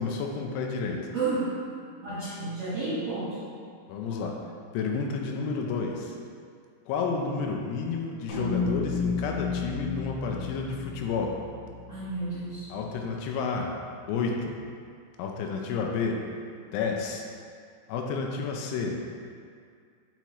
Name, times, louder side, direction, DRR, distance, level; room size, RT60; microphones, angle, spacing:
voice 1, 0.0-1.1 3.9-4.4 4.7-6.2 6.9-11.4 12.7-13.7 14.1-14.6 15.2-16.2 16.7-17.2 17.9-19.0, left 4 dB, 80° left, 1 dB, 2.5 m, -30 dB
voice 2, 1.1-1.5 2.0-3.4 11.9-12.7, right 3 dB, 55° right, -12 dB, 2.0 m, -31 dB
sound 1, 8.3-12.8, left 5 dB, 65° left, 2.5 m, -33 dB
5.8 x 5.7 x 3.0 m, 2.2 s
omnidirectional pair, 5.0 m